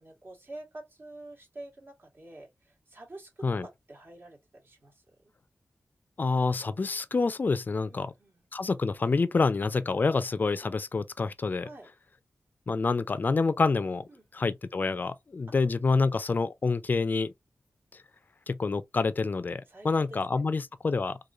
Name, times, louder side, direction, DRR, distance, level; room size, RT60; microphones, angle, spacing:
voice 1, 0.0-5.0 7.9-8.4 11.6-11.9 14.1-14.2 19.7-20.2, right 2 dB, 55° right, 1.3 m, -47 dB
voice 2, 6.2-8.1 8.5-11.7 12.7-14.0 14.3-17.3 17.9-18.0 18.5-21.2, left 4 dB, 45° left, 0.4 m, -27 dB
3.0 x 2.5 x 2.4 m
cardioid pair, 60°, 4 cm